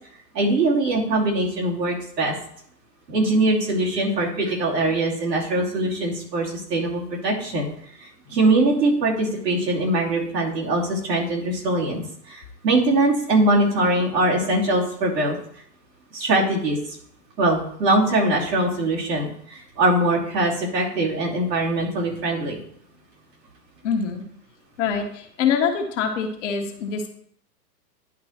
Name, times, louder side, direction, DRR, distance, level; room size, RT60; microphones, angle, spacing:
voice 1, 0.3-2.3 3.1-7.7 8.0-12.0 12.3-15.4 16.1-17.0 17.4-22.6, right 2 dB, 70° right, -3 dB, 2.8 m, -22 dB
voice 2, 23.8-24.2 24.8-27.1, left 6 dB, 45° left, 3 dB, 1.4 m, -24 dB
10.5 x 3.7 x 4.3 m, 0.66 s
hypercardioid pair, 120°, 50 cm